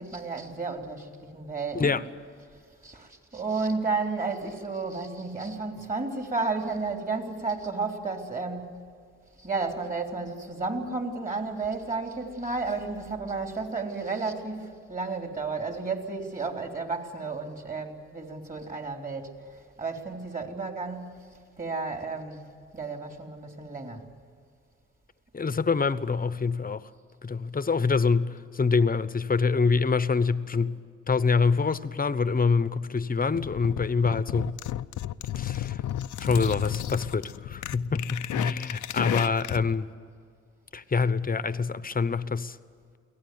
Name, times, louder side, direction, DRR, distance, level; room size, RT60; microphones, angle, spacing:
voice 1, 0.0-2.0 2.8-8.7 9.4-21.3 21.6-22.4 22.7-24.1 30.5-30.6, right 4 dB, 30° right, 3.7 m, -32 dB
voice 2, 25.3-26.9 27.2-30.8 31.1-34.6 35.3-35.8 36.2-39.9 40.7-42.6, left 5 dB, 30° left, 0.9 m, -25 dB
sound 1, 33.3-39.7, left 12 dB, 85° left, 0.6 m, -33 dB
23.5 x 17.5 x 9.5 m
cardioid pair, 75°, 30 cm